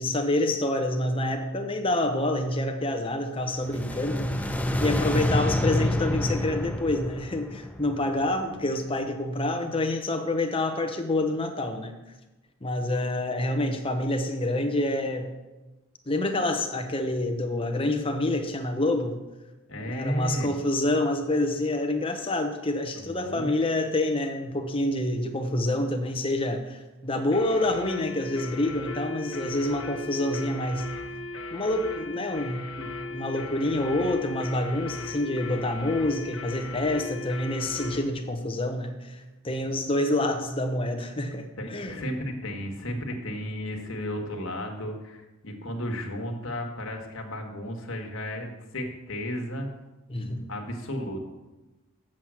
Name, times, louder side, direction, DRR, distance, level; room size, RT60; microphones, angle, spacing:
voice 1, 0.0-4.5 4.8-11.9 12.6-15.3 16.1-19.2 19.9-30.9 31.5-42.0 50.1-50.5, left 1 dB, 25° left, 5 dB, 0.9 m, -27 dB
sound 1, 3.5-8.6, left 1 dB, 5° left, 0.4 m, -28 dB
voice 2, 19.7-20.5 22.9-23.7 41.6-49.7 50.5-51.2, equal, 70° left, 2 dB, 1.5 m, -34 dB
sound 2, 27.3-38.1, left 3 dB, 85° left, 1.5 m, -38 dB
7.5 x 6.2 x 7.5 m, 1.1 s
head